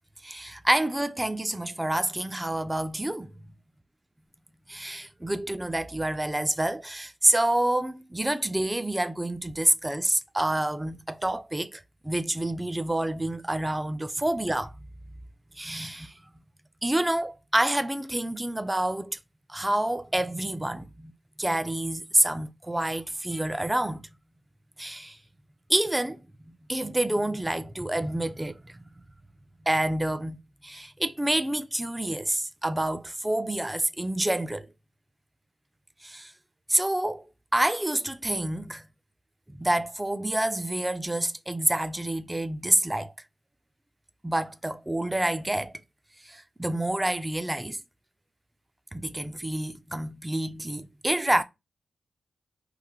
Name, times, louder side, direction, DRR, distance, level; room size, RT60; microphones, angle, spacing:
voice 1, 0.2-3.3 4.7-14.7 15.6-16.1 16.8-19.2 19.5-21.1 21.4-24.0 24.8-25.2 25.7-26.2 26.5-28.8 29.7-30.4 30.6-34.7 36.0-36.3 36.7-37.3 37.5-38.8 39.5-43.1 44.2-45.7 46.3-47.8 48.9-51.4, right 1 dB, 15° right, 0.4 m, -28 dB
3.2 x 2.5 x 3.6 m
cardioid pair, 65°, 0 cm